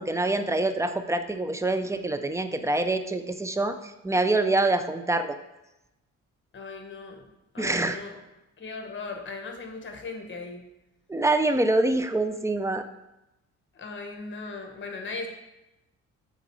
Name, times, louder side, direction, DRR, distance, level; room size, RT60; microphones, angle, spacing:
voice 1, 0.0-5.4 7.6-8.0 11.1-12.9, right 2 dB, 10° right, 8 dB, 0.6 m, -25 dB
voice 2, 6.5-7.3 7.5-8.2 8.6-10.6 13.7-15.3, left 3 dB, 40° left, 3 dB, 1.5 m, -38 dB
8.0 x 4.3 x 4.7 m, 0.94 s
cardioid pair, 90°, 30 cm